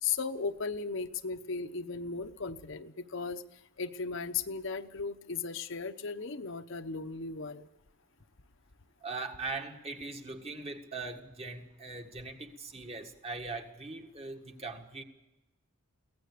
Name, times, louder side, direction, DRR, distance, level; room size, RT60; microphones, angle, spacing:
voice 1, 0.0-3.4 3.8-7.7, left 5 dB, 60° left, 8 dB, 0.9 m, -36 dB
voice 2, 9.0-15.0, right 3 dB, 30° right, 4 dB, 1.8 m, -40 dB
23.5 x 17.5 x 6.8 m, 0.96 s
head